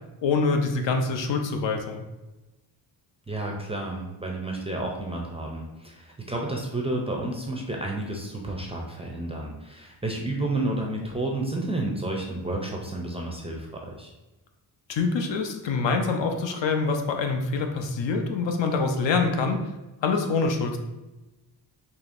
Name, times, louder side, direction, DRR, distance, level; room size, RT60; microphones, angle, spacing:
voice 1, 0.2-2.0 14.9-19.7 20.0-20.8, left 4 dB, 75° left, 4 dB, 0.7 m, -25 dB
voice 2, 3.3-14.1, right 2 dB, 15° right, -1 dB, 0.3 m, -31 dB
4.9 x 2.8 x 2.5 m, 1.0 s
wide cardioid pair, 165°, 44 cm